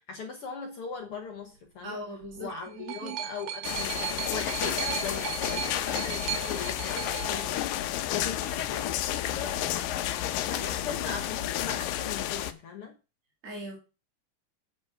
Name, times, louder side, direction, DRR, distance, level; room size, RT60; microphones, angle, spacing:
voice 1, 0.1-2.0 2.4-9.9 10.5-13.0, left 5 dB, 60° left, 1.5 m, -39 dB
voice 2, 1.8-3.2 13.4-13.8, right 1 dB, 25° right, 1.9 m, -40 dB
sound 1, 2.2-8.2 9.1-9.2, right 11 dB, 85° right, 2.7 m, -36 dB
sound 2, 3.6-12.5, left 13 dB, 85° left, 2.4 m, -31 dB
8.3 x 7.9 x 5.0 m
omnidirectional pair, 4.0 m